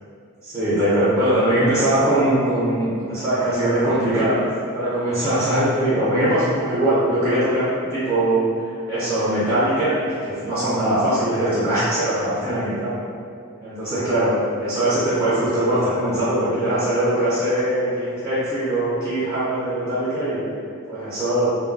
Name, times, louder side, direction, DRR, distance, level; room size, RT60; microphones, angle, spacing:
voice 1, 0.4-4.5 4.7-13.0 13.6-14.3 14.6-20.4 20.9-21.5, right 1 dB, 15° right, -13 dB, 0.7 m, -21 dB
2.2 x 2.1 x 3.7 m, 2.3 s
head